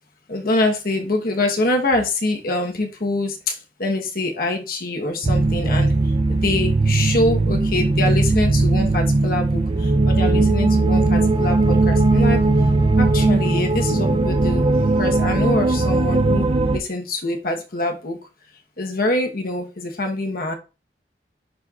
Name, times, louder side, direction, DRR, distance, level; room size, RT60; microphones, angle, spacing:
voice 1, 0.3-3.5 3.8-5.9 6.3-9.6 10.1-12.4 13.0-14.6 15.0-16.4 16.7-18.2 18.8-20.5, left 2 dB, 55° left, 3 dB, 1.1 m, -24 dB
sound 1, 5.2-16.8, right 2 dB, 30° right, 0.4 m, -18 dB
10.5 x 4.3 x 2.4 m, 0.31 s
head